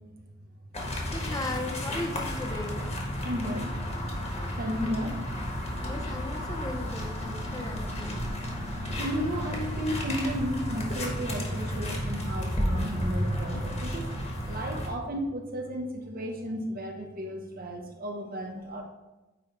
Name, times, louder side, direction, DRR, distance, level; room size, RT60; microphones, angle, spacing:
sound 1, 0.7-14.9, equal, 35° left, 1.2 m, -33 dB
voice 1, 1.1-2.9 4.7-5.0 5.8-8.3, left 2 dB, 20° left, 2 dB, 0.5 m, -37 dB
voice 2, 3.2-3.7 4.6-5.1 8.7-14.1 14.5-18.8, equal, 45° right, 2 dB, 0.9 m, -33 dB
9.0 x 3.2 x 3.9 m, 1.1 s
head